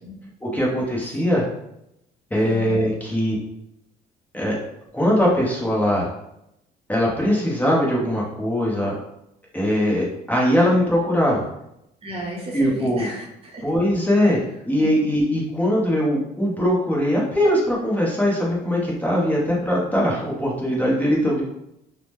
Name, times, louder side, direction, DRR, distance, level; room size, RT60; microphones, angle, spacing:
voice 1, 0.4-1.4 2.3-3.4 4.3-4.6 4.9-6.1 6.9-8.9 9.5-11.4 12.5-13.1 13.6-21.4, equal, 10° left, -4 dB, 0.8 m, -21 dB
voice 2, 12.0-13.6 14.8-14.9, right 1 dB, 35° right, -2 dB, 0.7 m, -34 dB
2.8 x 2.1 x 3.3 m, 0.81 s
cardioid pair, 110°, 17 cm